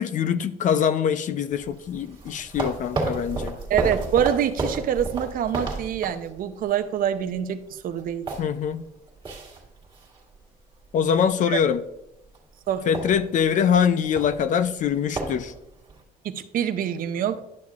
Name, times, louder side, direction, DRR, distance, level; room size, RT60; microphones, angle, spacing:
voice 1, 0.0-3.6 8.4-8.9 10.9-11.8 12.9-15.5, left 8 dB, 50° left, 0.4 m, -23 dB
sound 1, 1.5-6.8 7.1-7.3 7.7-10.4 10.7-11.1 11.6-12.0 12.2-12.4 12.7-16.0, right 3 dB, 25° right, 1.8 m, -32 dB
voice 2, 3.7-8.3 11.5-11.6 12.7-12.9 16.2-17.4, right 9 dB, 55° right, 0.6 m, -25 dB
10.5 x 6.4 x 2.4 m
cardioid pair, 110°, 17 cm